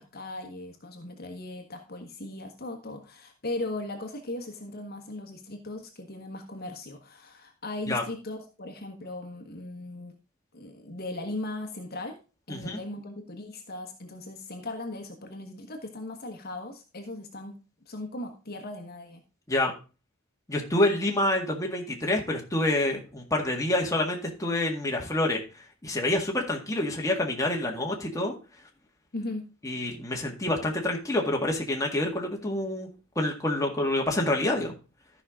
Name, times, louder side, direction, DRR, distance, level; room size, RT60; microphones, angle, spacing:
voice 1, 0.0-10.1 10.5-12.1 12.5-17.6 17.9-19.2 29.1-29.4, left 2 dB, 50° left, 5 dB, 1.4 m, -38 dB
voice 2, 12.5-12.8 19.5-19.7 20.5-25.4 25.8-28.3 29.6-32.9 33.2-34.8, left 1 dB, 15° left, 0 dB, 1.8 m, -27 dB
13.5 x 5.6 x 3.7 m, 0.33 s
head